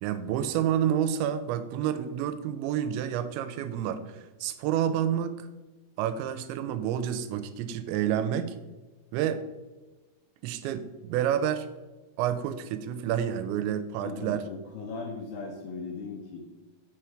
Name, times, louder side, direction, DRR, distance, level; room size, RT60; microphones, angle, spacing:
voice 1, 0.0-5.5 6.0-8.6 9.1-9.4 10.4-11.7 12.2-14.4, right 10 dB, 90° right, 11 dB, 2.9 m, -29 dB
voice 2, 14.0-16.4, left 4 dB, 80° left, 0 dB, 2.2 m, -38 dB
6.5 x 4.9 x 4.4 m, 1.2 s
omnidirectional pair, 5.1 m